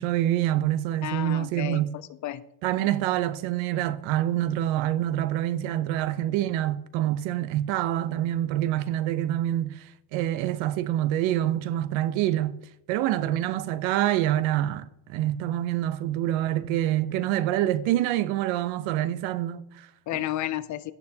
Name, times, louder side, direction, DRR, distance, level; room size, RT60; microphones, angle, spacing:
voice 1, 0.0-1.9 2.6-12.6 12.9-19.9, right 13 dB, 85° right, 0.8 m, -26 dB
voice 2, 1.0-2.4 20.1-20.9, left 13 dB, 45° left, 0.4 m, -32 dB
16.5 x 6.8 x 2.8 m
cardioid pair, 165°, 46 cm